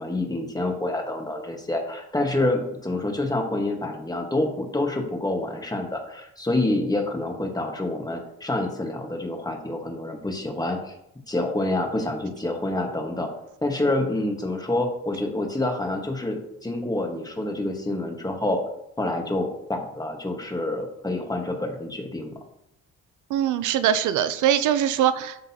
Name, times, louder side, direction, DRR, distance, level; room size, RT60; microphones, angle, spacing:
voice 1, 0.0-10.9 11.3-13.3 13.6-18.6 19.0-22.3, left 2 dB, 15° left, 3 dB, 1.3 m, -27 dB
voice 2, 23.3-25.4, right 10 dB, 80° right, 12 dB, 0.5 m, -22 dB
11.5 x 4.0 x 2.8 m, 0.79 s
cardioid pair, 90°, 30 cm